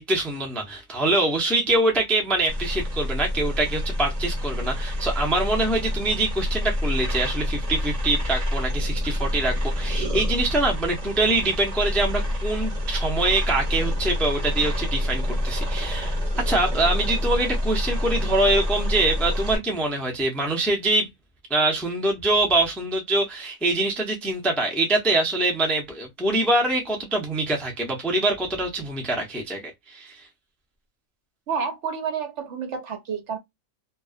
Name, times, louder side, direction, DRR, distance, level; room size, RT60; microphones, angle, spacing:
voice 1, 0.0-16.2 16.5-21.1 21.5-30.2, right 2 dB, ahead, 0.3 m, -24 dB
sound 1, 2.5-19.6, left 1 dB, 30° right, 1.1 m, -27 dB
voice 2, 31.5-33.4, right 6 dB, 65° right, 1.0 m, -29 dB
2.4 x 2.3 x 2.3 m
omnidirectional pair, 1.4 m